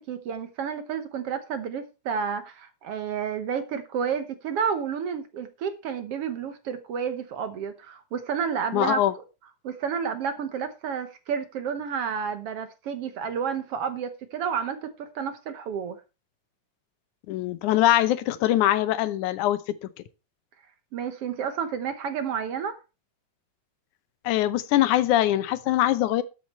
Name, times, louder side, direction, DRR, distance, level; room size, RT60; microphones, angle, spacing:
voice 1, 0.0-9.0 9.6-16.0 20.9-22.8, right 7 dB, 65° right, 1.7 m, -30 dB
voice 2, 8.7-9.1 17.3-19.9 24.2-26.2, left 13 dB, 85° left, 2.3 m, -23 dB
13.0 x 8.2 x 4.3 m
omnidirectional pair, 3.4 m